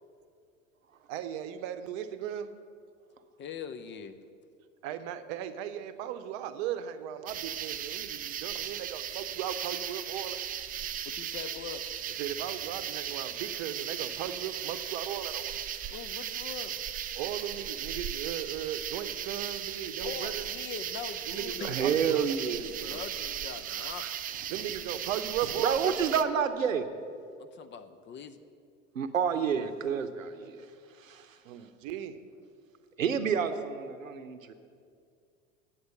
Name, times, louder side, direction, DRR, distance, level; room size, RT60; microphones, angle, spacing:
voice 1, 1.1-2.5 4.8-10.4 12.2-15.5 17.1-20.4 21.3-22.3 24.5-25.9 31.5-32.2, right 10 dB, 55° right, 11 dB, 0.8 m, -37 dB
voice 2, 3.4-4.2 11.1-11.8 15.9-17.0 20.0-21.9 22.9-24.0 27.4-28.4, left 7 dB, 30° left, 10 dB, 0.6 m, -42 dB
sound 1, 7.3-26.2, right 10 dB, 25° right, 0.4 m, -37 dB
voice 3, 21.6-23.0 23.7-24.1 25.4-26.8 28.9-30.7 31.0-31.4 33.0-34.5, right 7 dB, 90° right, 10 dB, 0.7 m, -30 dB
9.4 x 7.4 x 6.8 m, 2.3 s
hypercardioid pair, 80°, 39 cm